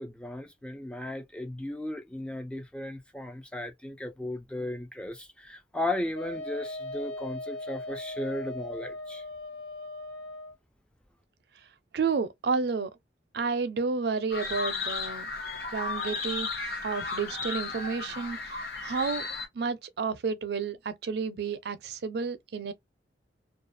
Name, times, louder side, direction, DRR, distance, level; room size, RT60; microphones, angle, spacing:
voice 1, 0.0-9.2, left 1 dB, 5° left, 0.3 m, -36 dB
Wind instrument woodwind instrument, 6.1-10.6, left 2 dB, 85° left, 0.7 m, -39 dB
voice 2, 11.9-12.9 13.3-15.3 15.7-16.5 16.8-19.3 19.5-22.7, right 5 dB, 65° right, 0.4 m, -31 dB
sound 1, 14.3-19.5, left 4 dB, 60° left, 1.0 m, -34 dB
2.4 x 2.3 x 2.5 m
head